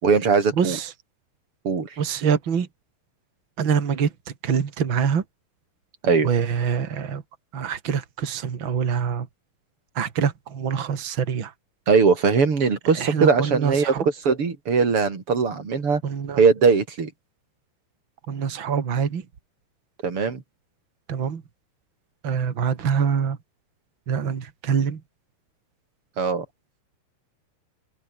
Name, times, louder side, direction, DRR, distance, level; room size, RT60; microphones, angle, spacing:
voice 1, 0.0-0.8 1.6-1.9 6.0-6.3 11.9-16.0 16.4-17.1 20.0-20.4 26.2-26.5, right 5 dB, 30° right, 3.7 m, -20 dB
voice 2, 0.5-0.9 2.0-2.7 3.6-4.1 4.4-5.2 6.2-7.2 7.5-9.3 9.9-11.5 12.9-14.0 16.0-16.4 18.3-19.2 21.1-21.4 22.2-23.4 24.1-25.0, right 7 dB, 60° right, 1.2 m, -25 dB
omnidirectional pair, 5.6 m